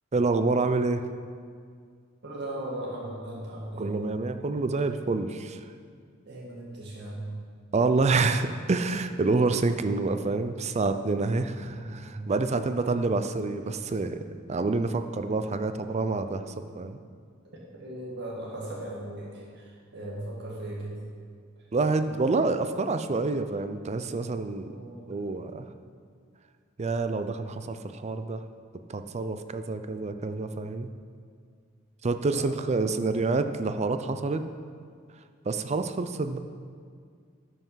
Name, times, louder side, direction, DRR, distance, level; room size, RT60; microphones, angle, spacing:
voice 1, 0.1-1.0 3.8-5.6 7.7-14.2 14.5-17.0 21.7-24.7 25.1-25.6 26.8-28.4 28.9-30.9 32.0-34.4 35.5-36.4, right 3 dB, 35° right, 9 dB, 0.5 m, -27 dB
voice 2, 2.2-3.9 6.3-7.3 11.6-12.2 17.8-21.0 24.7-25.0 32.3-32.9, right 1 dB, 60° right, -4 dB, 1.8 m, -38 dB
12.0 x 5.6 x 5.7 m, 2.1 s
head